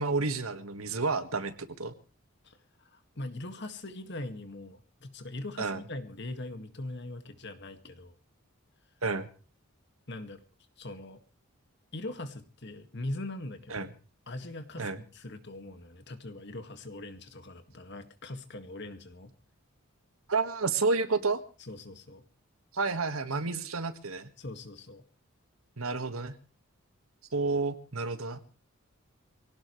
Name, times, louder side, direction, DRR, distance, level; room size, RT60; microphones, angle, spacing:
voice 1, 0.0-1.9 5.6-5.8 9.0-9.3 13.7-13.9 14.8-15.0 20.3-21.4 22.7-24.3 25.8-26.3 27.3-28.4, right 3 dB, 80° right, 9 dB, 1.8 m, -30 dB
voice 2, 2.4-8.2 10.1-10.4 10.8-11.2 11.9-13.9 14.3-19.3 21.6-22.2 24.4-25.0, left 2 dB, 55° left, 8 dB, 2.0 m, -41 dB
24.5 x 17.5 x 3.2 m, 0.36 s
head